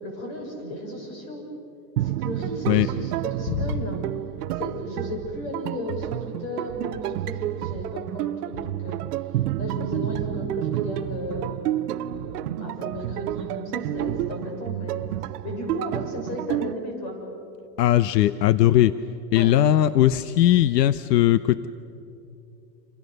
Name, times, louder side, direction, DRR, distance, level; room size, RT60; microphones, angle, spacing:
voice 1, 0.0-1.4 2.0-4.0 4.6-9.0 9.6-11.6 12.0-15.1 15.4-17.2 19.3-19.5, left 1 dB, 35° left, 1 dB, 6.6 m, -34 dB
sound 1, 2.0-16.7, right 14 dB, 70° right, 0.7 m, -30 dB
voice 2, 17.8-18.9 19.3-21.7, left 13 dB, 80° left, 14 dB, 0.8 m, -19 dB
28.0 x 27.0 x 6.7 m, 2.7 s
supercardioid pair, 175°, 49 cm